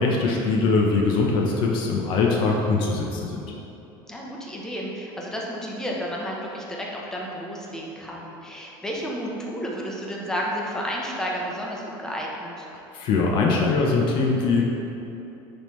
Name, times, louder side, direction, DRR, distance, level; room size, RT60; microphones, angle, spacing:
voice 1, 0.0-3.4 12.9-14.6, left 3 dB, 45° left, -1 dB, 0.7 m, -22 dB
voice 2, 4.1-12.7, equal, 5° left, -3 dB, 0.8 m, -31 dB
10.0 x 3.6 x 3.1 m, 2.9 s
cardioid pair, 155°, 11 cm